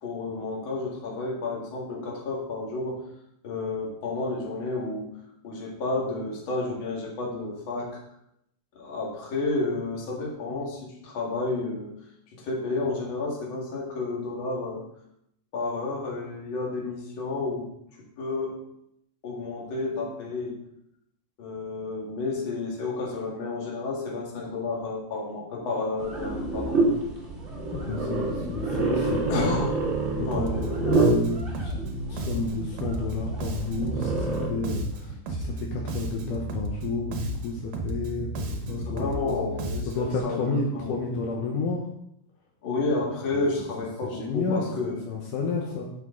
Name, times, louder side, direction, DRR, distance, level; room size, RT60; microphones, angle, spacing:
voice 1, 0.0-3.0 3.4-5.1 5.4-8.0 8.7-11.9 12.3-14.9 15.5-17.7 18.2-18.6 19.2-20.5 21.4-26.8 29.3-29.7 30.3-30.8 38.9-41.0 42.6-45.0, left 3 dB, 40° left, -3 dB, 2.4 m, -31 dB
sound 1, 26.0-34.5, right 2 dB, 25° right, 1.6 m, -28 dB
voice 2, 27.7-29.6 30.2-31.7 32.1-39.3 39.9-41.9 43.3-43.4 44.1-45.9, left 4 dB, 70° left, -1 dB, 2.5 m, -31 dB
Bass guitar, 30.3-40.2, right 1 dB, 80° right, 2.7 m, -33 dB
10.5 x 6.1 x 3.8 m, 0.76 s
omnidirectional pair, 4.0 m